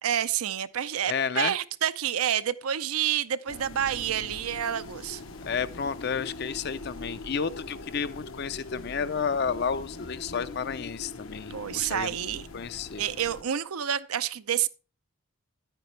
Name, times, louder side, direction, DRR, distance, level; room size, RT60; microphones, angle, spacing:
voice 1, 0.0-5.2 11.5-12.5 13.0-14.7, right 9 dB, 85° right, 0.6 m, -28 dB
voice 2, 1.1-1.5 5.5-12.1 12.5-13.0, left 6 dB, 50° left, 0.5 m, -31 dB
sound 1, 3.5-13.4, left 3 dB, 70° left, 0.9 m, -42 dB
10.5 x 9.0 x 3.2 m
head